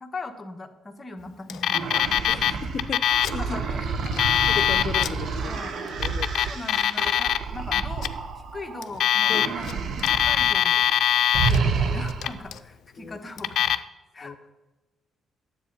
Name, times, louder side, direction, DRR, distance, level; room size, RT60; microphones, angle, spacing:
voice 1, 0.0-2.6 3.4-4.2 4.8-4.9 5.5-5.8 6.4-8.1 8.5-10.8 11.3-13.7 14.1-14.4, left 2 dB, 25° left, 5 dB, 1.2 m, -39 dB
Alarm, 1.5-2.5 2.8-3.4 4.0-5.1 5.9-7.4 7.7-8.1 8.8-9.7 10.0-11.6 12.1-12.6 13.4-13.8, left 10 dB, 70° left, 0.5 m, -22 dB
sound 1, 1.7-8.9 9.3-10.5 10.8-11.0 11.3-12.5, right 5 dB, 60° right, 1.0 m, -30 dB
voice 2, 2.7-3.6 4.5-5.1 5.3-5.6 6.0-6.3 9.3-9.4 13.0-13.2 14.2-14.4, left 6 dB, 50° left, 11 dB, 0.8 m, -34 dB
10.0 x 7.7 x 5.4 m, 1.1 s
cardioid pair, 90°, 0 cm